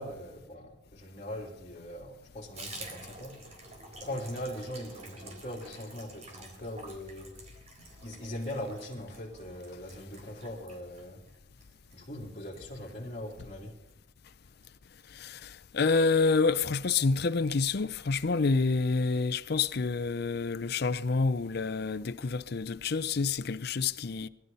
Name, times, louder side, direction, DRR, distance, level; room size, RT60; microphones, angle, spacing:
voice 1, 0.0-3.6 4.0-7.4 8.0-11.2 11.9-13.8, left 1 dB, 35° left, 3.0 m, -41 dB
Water tap faucet / Bathtub (filling or washing), 2.5-13.5 13.8-14.0 14.3-14.4 14.6-15.1 15.4-15.5 15.8-15.9, right 2 dB, 35° right, 3.6 m, -49 dB
voice 2, 15.1-24.3, left 4 dB, 55° left, 0.5 m, -28 dB
19.5 x 12.0 x 5.4 m
head